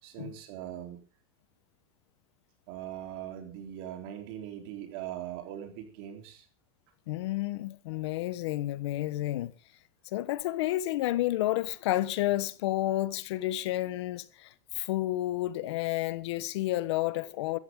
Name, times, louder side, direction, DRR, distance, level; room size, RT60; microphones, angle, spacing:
voice 1, 0.0-1.0 2.7-6.5, right 11 dB, 45° right, 3.9 m, -41 dB
voice 2, 7.1-9.5 10.0-17.6, left 15 dB, 70° left, 1.3 m, -30 dB
16.0 x 15.0 x 3.9 m
supercardioid pair, 180°, 15 cm